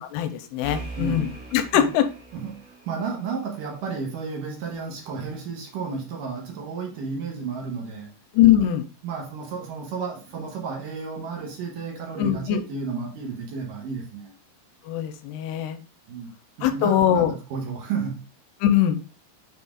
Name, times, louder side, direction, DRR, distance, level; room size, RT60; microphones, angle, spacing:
voice 1, 0.1-2.0 8.3-8.8 12.2-12.6 14.9-15.8 16.6-17.3 18.6-19.0, left 11 dB, 90° left, 2.7 m, -21 dB
sound 1, 0.6-4.1, right 3 dB, 20° right, 2.8 m, -41 dB
voice 2, 1.0-1.4 1.7-1.9 2.3-2.6 2.9-8.1 9.0-14.3 16.1-16.3 16.6-18.3, right 5 dB, 65° right, 2.3 m, -32 dB
7.2 x 5.5 x 2.4 m
omnidirectional pair, 4.7 m